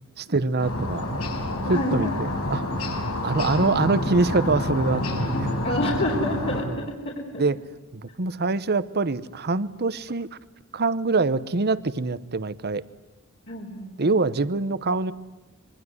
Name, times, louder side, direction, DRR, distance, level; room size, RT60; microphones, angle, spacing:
voice 1, 0.2-1.1 1.7-2.6 3.2-5.5 6.7-6.9 7.4-7.6 7.9-10.3 10.7-12.8 14.0-15.1, right 3 dB, 50° right, 16 dB, 0.9 m, -24 dB
sound 1, 0.6-6.6, left 1 dB, 85° left, 5.5 m, -28 dB
voice 2, 1.7-2.2 5.6-7.4 13.5-14.0, left 1 dB, 50° left, -3 dB, 4.0 m, -28 dB
25.5 x 23.5 x 9.6 m, 1.1 s
head